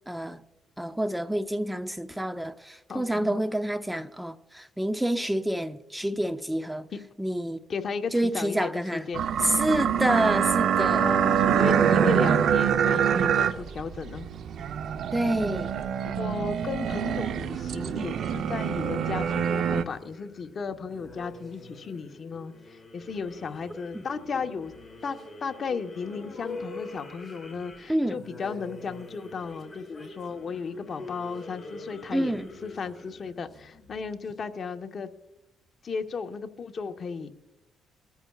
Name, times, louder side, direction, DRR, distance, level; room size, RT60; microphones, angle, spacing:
voice 1, 0.1-0.4 0.8-6.9 7.2-7.6 8.1-9.1 9.4-11.1 15.1-15.7 23.7-24.0 27.9-28.2 32.1-32.5, right 1 dB, 5° right, 0.6 m, -28 dB
voice 2, 2.9-3.4 6.9-7.0 7.7-9.3 10.8-14.3 16.0-24.7 25.0-35.1 35.8-37.3, left 5 dB, 50° left, 1.1 m, -35 dB
sound 1, 9.1-19.8, right 8 dB, 65° right, 0.7 m, -25 dB
sound 2, 19.4-34.3, left 2 dB, 15° left, 4.6 m, -44 dB
22.0 x 14.0 x 2.4 m
cardioid pair, 90°, 0 cm